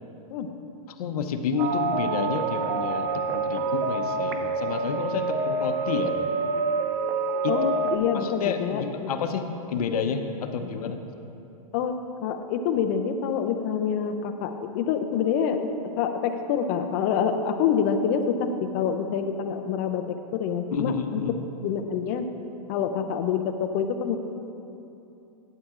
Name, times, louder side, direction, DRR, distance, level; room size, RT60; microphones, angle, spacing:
voice 1, 1.0-6.1 7.4-7.5 8.1-11.0 20.7-21.4, left 6 dB, 70° left, 6 dB, 0.7 m, -30 dB
sound 1, 1.6-8.0, right 4 dB, 35° right, 0.5 m, -27 dB
voice 2, 7.5-9.1 11.7-15.7 16.0-21.2 21.6-22.3 22.7-24.2, left 7 dB, 30° left, 6 dB, 0.4 m, -26 dB
11.5 x 8.4 x 2.4 m, 2.8 s
supercardioid pair, 160°, 20 cm